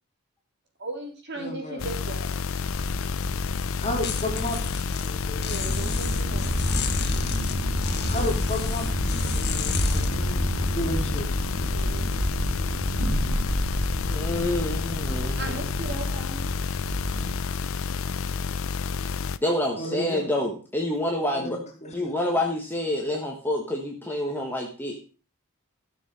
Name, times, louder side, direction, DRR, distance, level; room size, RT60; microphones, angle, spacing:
voice 1, 0.8-2.4 5.4-6.6 11.7-12.1 15.4-16.6, right 2 dB, 50° right, 1 dB, 3.6 m, -37 dB
voice 2, 1.4-1.8 3.8-4.6 4.9-5.4 8.1-11.2 19.8-20.3 21.3-22.1, left 1 dB, 30° left, 1 dB, 2.6 m, -33 dB
sound 1, 1.8-19.4, left 5 dB, 65° left, 0.5 m, -30 dB
sound 2, 2.7-11.2, left 4 dB, 50° left, 1.5 m, -34 dB
sound 3, 5.6-17.3, equal, 70° right, 2.6 m, -29 dB
voice 3, 14.1-15.6 19.4-21.6 21.9-25.0, left 1 dB, 10° left, 0 dB, 1.5 m, -28 dB
13.5 x 6.9 x 5.4 m, 0.36 s
head